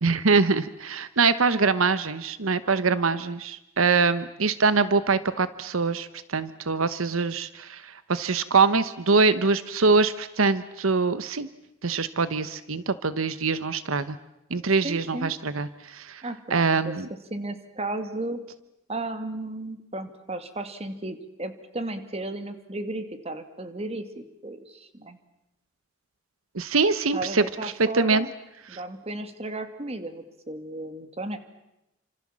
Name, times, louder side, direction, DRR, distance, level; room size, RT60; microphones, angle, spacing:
voice 1, 0.0-11.5 11.8-14.2 14.5-16.2 16.5-17.1 26.5-28.3 28.7-28.8, right 4 dB, 85° right, 14 dB, 1.1 m, -24 dB
voice 2, 14.8-15.3 16.2-16.9 17.3-18.4 18.9-25.2 27.1-28.3 28.7-31.4, right 2 dB, 30° right, 9 dB, 2.4 m, -34 dB
29.5 x 26.5 x 7.5 m, 0.90 s
head